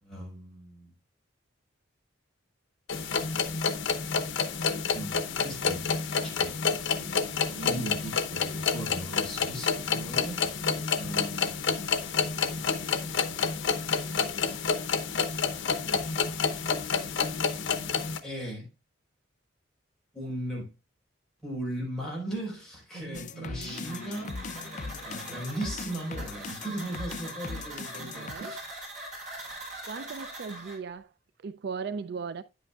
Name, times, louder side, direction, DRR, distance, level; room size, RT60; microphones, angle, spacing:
voice 1, 0.0-0.9 4.9-6.6 7.5-10.4 11.0-11.8 18.2-18.7 20.1-20.7 21.4-24.4 25.0-28.7, right 1 dB, 5° left, 4.7 m, -38 dB
sound 1, 2.9-18.2, left 5 dB, 80° left, 0.8 m, -29 dB
voice 2, 7.0-8.0 22.9-23.8 28.1-28.5 29.9-31.1 31.4-32.4, right 5 dB, 60° right, 0.4 m, -39 dB
sound 2, 23.1-28.4, left 3 dB, 40° left, 0.5 m, -39 dB
sound 3, 23.7-30.8, right 1 dB, 40° right, 4.5 m, -42 dB
9.9 x 8.4 x 2.3 m
head